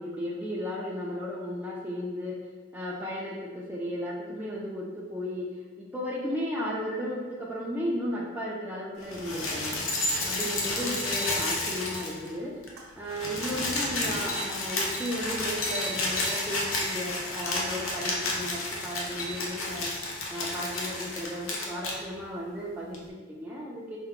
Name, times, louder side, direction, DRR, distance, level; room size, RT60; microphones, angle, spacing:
voice 1, 0.0-2.4 2.7-5.5 5.8-9.8 10.3-12.5 12.9-20.0 20.3-24.0, equal, 10° right, -6 dB, 0.4 m, -34 dB
sound 1, 9.0-12.4 12.6-12.7 13.0-22.0 22.9-23.0, left 2 dB, 70° left, 0.7 m, -31 dB
Shatter, 10.8-12.4 12.8-13.8 14.1-14.8 15.2-15.3, right 3 dB, 75° right, 0.8 m, -49 dB
4.5 x 2.2 x 3.6 m, 1.3 s
head